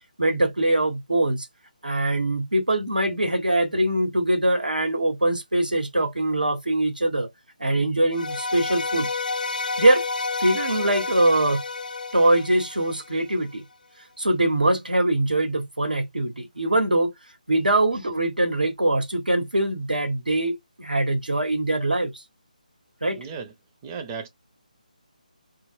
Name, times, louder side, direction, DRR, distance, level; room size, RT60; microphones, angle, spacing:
voice 1, 0.2-1.5 1.8-7.3 7.6-9.1 9.8-10.0 10.4-11.6 12.1-13.6 14.2-17.1 17.5-22.2 23.0-23.2, right 1 dB, 85° right, 0.9 m, -22 dB
sound 1, 8.1-13.3, left 3 dB, 75° left, 0.3 m, -30 dB
voice 2, 23.2-23.5 23.8-24.3, right 5 dB, 20° right, 0.5 m, -35 dB
2.1 x 2.1 x 3.2 m
figure-of-eight pair, 155°, 5 cm